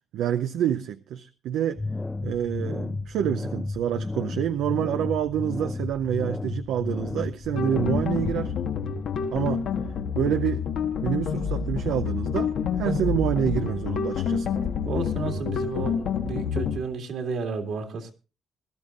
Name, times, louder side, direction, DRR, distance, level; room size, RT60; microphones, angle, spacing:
voice 1, 0.1-1.8 2.2-8.5 9.3-9.6 10.1-10.6 11.0-12.5 12.8-14.5, right 10 dB, 85° right, 0.5 m, -27 dB
sound 1, 1.8-8.3, left 2 dB, 15° left, 0.5 m, -32 dB
sound 2, 7.6-16.8, left 7 dB, 70° left, 1.3 m, -28 dB
voice 2, 14.9-18.1, right 4 dB, 70° right, 2.1 m, -32 dB
20.5 x 12.0 x 2.5 m
cardioid pair, 90°, 0 cm